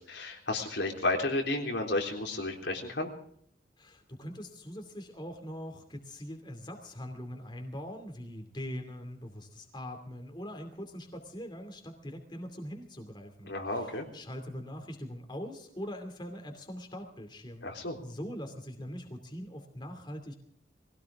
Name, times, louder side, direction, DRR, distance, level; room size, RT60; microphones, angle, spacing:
voice 1, 0.0-3.1 13.5-14.1 17.6-18.0, left 2 dB, 85° left, 1 dB, 3.6 m, -32 dB
voice 2, 3.8-17.7 18.0-20.3, equal, 25° left, 4 dB, 2.6 m, -42 dB
22.5 x 17.0 x 3.6 m, 0.66 s
head